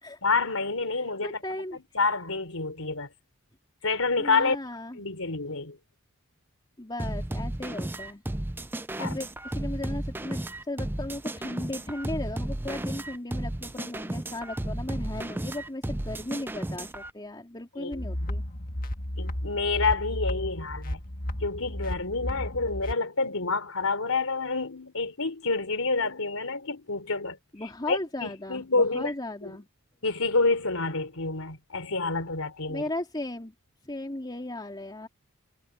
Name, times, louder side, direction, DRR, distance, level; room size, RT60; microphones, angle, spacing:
voice 1, 0.2-1.4 1.7-3.1 3.8-4.6 5.0-5.8 9.0-9.2 17.8-18.3 19.2-21.0 21.4-29.1 29.4-29.5 30.0-32.8, left 3 dB, 70° left, 3.7 m, -28 dB
voice 2, 0.9-1.8 4.2-5.0 6.8-8.2 9.0-18.4 27.5-29.7 32.7-33.5 33.8-35.1, left 1 dB, 20° left, 3.1 m, -36 dB
sound 1, 7.0-17.1, right 1 dB, 10° right, 0.5 m, -33 dB
sound 2, 17.9-22.9, left 1 dB, 40° left, 1.6 m, -33 dB
head